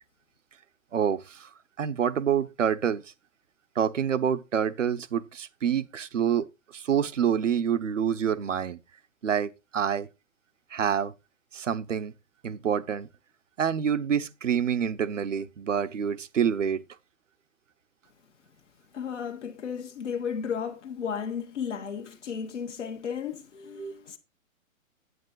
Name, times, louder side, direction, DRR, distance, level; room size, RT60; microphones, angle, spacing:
voice 1, 0.9-1.5 1.8-3.0 3.8-6.5 6.7-8.8 9.2-10.1 10.7-11.1 11.5-12.1 12.4-13.1 13.6-16.8 23.8-23.9, right 8 dB, 60° right, 1.0 m, -27 dB
voice 2, 18.9-24.2, left 7 dB, 55° left, 1.5 m, -34 dB
9.7 x 8.8 x 3.9 m
figure-of-eight pair, 120°, 42 cm